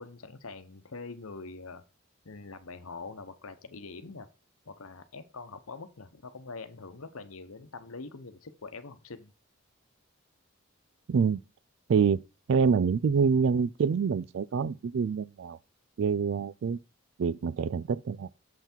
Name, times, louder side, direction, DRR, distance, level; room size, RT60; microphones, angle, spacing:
voice 1, 0.0-1.8 2.2-4.3 4.6-9.3, left 3 dB, 85° left, 1.0 m, -44 dB
voice 2, 11.1-11.4 11.9-12.2 12.5-15.6 16.0-16.8 17.2-18.3, right 6 dB, 65° right, 0.3 m, -26 dB
7.3 x 5.8 x 4.4 m
head